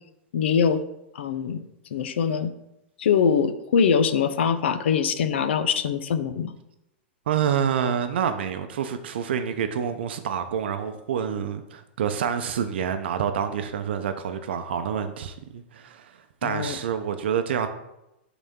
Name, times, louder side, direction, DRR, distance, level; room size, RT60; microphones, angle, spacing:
voice 1, 0.3-0.8 1.1-1.6 1.9-2.5 3.0-6.5 16.4-16.8, left 7 dB, 75° left, 0.6 m, -23 dB
voice 2, 7.3-17.7, right 8 dB, 70° right, 0.6 m, -27 dB
11.0 x 4.0 x 3.7 m
supercardioid pair, 180°, 6 cm